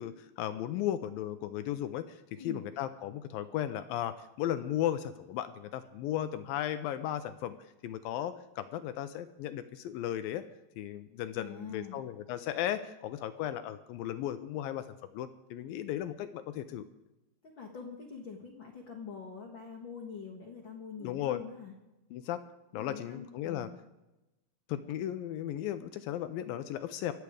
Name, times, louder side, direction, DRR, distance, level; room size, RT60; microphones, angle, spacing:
voice 1, 0.0-7.6 7.8-10.4 10.8-14.8 15.1-16.9 21.0-21.4 22.1-22.4 22.7-23.7 24.7-27.1, left 11 dB, 80° left, 11 dB, 2.3 m, -35 dB
voice 2, 2.3-2.7 11.4-12.0 17.4-21.7 22.7-23.8, left 6 dB, 55° left, 1 dB, 1.3 m, -45 dB
24.5 x 8.3 x 5.0 m, 0.98 s
omnidirectional pair, 4.5 m